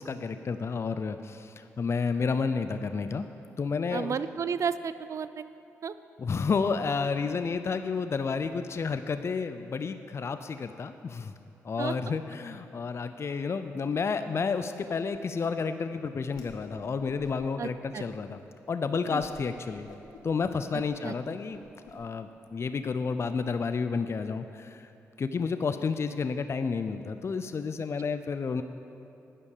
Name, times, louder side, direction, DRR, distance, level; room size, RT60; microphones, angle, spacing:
voice 1, 0.0-3.3 3.6-4.2 6.2-11.3 11.6-18.4 18.7-19.9 20.2-21.6 21.9-24.9 25.2-28.6, left 5 dB, 45° left, 10 dB, 0.6 m, -31 dB
voice 2, 3.9-5.5 5.8-5.9 11.8-11.9 17.6-18.0 19.1-19.2 21.0-21.1, right 6 dB, 55° right, 14 dB, 0.5 m, -32 dB
Whoosh swoosh swish, 16.3-16.8 17.0-17.6 17.9-18.4 18.8-18.9 19.2-19.4 19.7-22.0, left 4 dB, 80° left, 1.5 m, -51 dB
12.0 x 9.9 x 6.6 m, 2.7 s
supercardioid pair, 55°, 6 cm